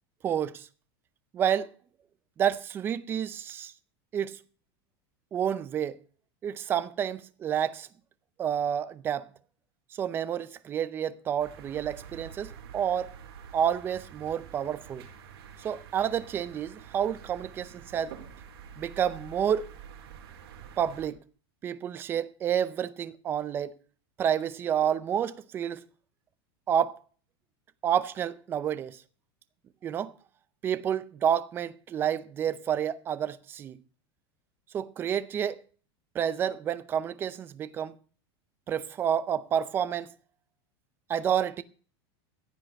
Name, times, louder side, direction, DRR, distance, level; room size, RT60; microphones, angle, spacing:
voice 1, 0.2-0.7 1.3-1.7 2.4-3.7 4.1-4.4 5.3-6.0 6.4-7.9 8.4-9.3 9.9-13.1 13.5-15.1 15.6-18.1 18.8-19.6 20.8-21.2 21.6-23.7 24.2-25.8 26.7-27.0 27.8-29.0 29.8-30.1 30.6-33.8 34.7-35.6 36.1-37.9 38.7-40.1 41.1-41.6, right 9 dB, 15° right, 0.5 m, -29 dB
sound 1, 11.4-21.1, right 7 dB, 80° right, 4.5 m, -47 dB
15.0 x 8.4 x 5.2 m
supercardioid pair, 175°, 13 cm